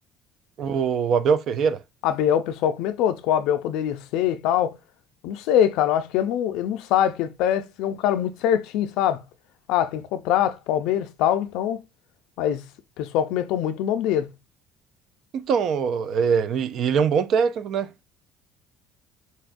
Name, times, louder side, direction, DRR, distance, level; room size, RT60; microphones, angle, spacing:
voice 1, 0.6-1.8 15.3-17.9, right 6 dB, 55° right, 0.3 m, -22 dB
voice 2, 2.0-4.8 5.2-9.2 9.7-11.8 12.4-12.7 13.0-14.3, left 10 dB, 80° left, 0.3 m, -23 dB
4.0 x 2.2 x 2.5 m
cardioid pair, 120°, 0 cm